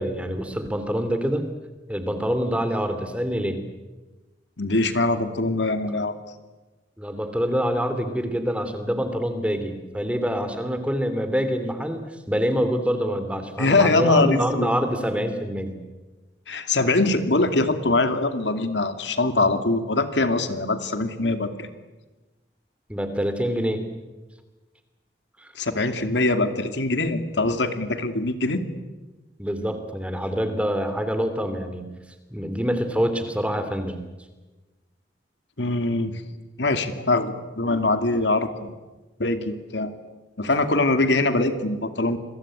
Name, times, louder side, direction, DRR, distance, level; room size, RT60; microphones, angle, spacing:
voice 1, 0.0-1.4 1.9-3.6 7.0-12.0 12.3-15.8 22.9-23.8 25.4-25.5 29.4-31.9 32.3-34.0, equal, 5° right, 9 dB, 3.0 m, -26 dB
voice 2, 4.6-6.1 13.6-14.7 16.5-21.7 25.6-28.6 35.6-36.1 36.6-38.8 39.2-39.9 40.4-42.2, left 2 dB, 80° left, 9 dB, 2.5 m, -23 dB
29.5 x 22.5 x 9.0 m, 1.2 s
head